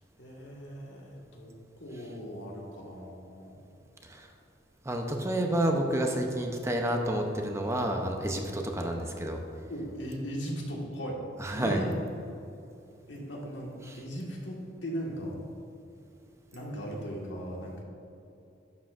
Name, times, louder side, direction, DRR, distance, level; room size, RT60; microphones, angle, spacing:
voice 1, 0.2-3.6 9.7-11.2 11.5-11.9 13.1-15.4 16.5-17.8, equal, 85° left, -2 dB, 1.7 m, -38 dB
voice 2, 4.8-9.4 11.4-11.8 13.9-14.0, right 1 dB, 15° right, 2 dB, 0.7 m, -29 dB
11.5 x 7.4 x 2.5 m, 2.7 s
head